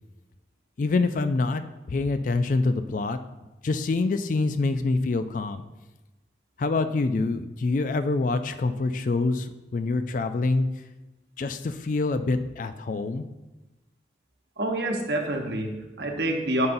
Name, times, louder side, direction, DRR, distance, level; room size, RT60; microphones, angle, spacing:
voice 1, 0.8-1.6 1.9-3.2 3.6-5.6 6.6-10.7 11.4-13.3, left 3 dB, 45° left, 11 dB, 0.3 m, -26 dB
voice 2, 14.6-16.7, right 1 dB, 65° right, 3 dB, 1.0 m, -27 dB
9.5 x 5.5 x 2.6 m, 1.1 s
head